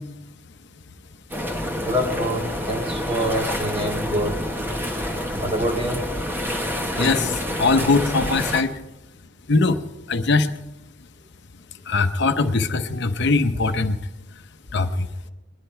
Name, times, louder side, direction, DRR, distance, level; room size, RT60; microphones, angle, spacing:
sound 1, 1.3-8.6, equal, 10° right, 1.2 m, -28 dB
voice 1, 1.8-4.4 5.4-6.1 7.0-7.1 8.6-8.7, equal, 30° right, 2 dB, 2.1 m, -26 dB
voice 2, 7.0-8.7 9.5-9.8 10.1-10.5 11.9-14.0 14.7-15.3, left 3 dB, 65° left, 7 dB, 0.8 m, -21 dB
21.5 x 10.5 x 4.5 m, 0.94 s
head